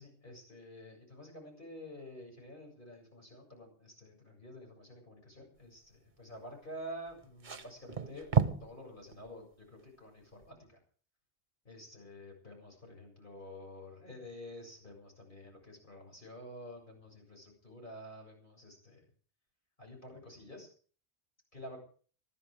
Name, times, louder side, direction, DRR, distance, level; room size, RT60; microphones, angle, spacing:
voice 1, 0.0-8.3 8.6-10.8 11.6-19.1 19.8-20.7 21.5-21.8, equal, 45° left, 1 dB, 7.7 m, -49 dB
sound 1, 7.1-8.7 9.1-9.3 10.4-10.5, right 7 dB, 45° right, 1.2 m, -31 dB
21.0 x 13.0 x 5.0 m, 0.42 s
omnidirectional pair, 1.2 m